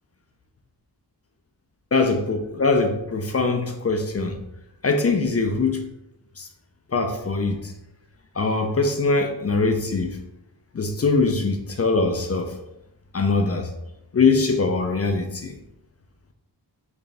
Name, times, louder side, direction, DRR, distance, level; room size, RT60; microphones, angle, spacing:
voice 1, 1.9-4.4 4.8-5.8 6.4-6.5 6.9-7.7 8.4-10.2 10.7-12.6 13.1-13.7 14.1-15.6, left 3 dB, 35° left, 0.4 m, -22 dB
4.0 x 2.6 x 3.3 m
wide cardioid pair, 100°, 44 cm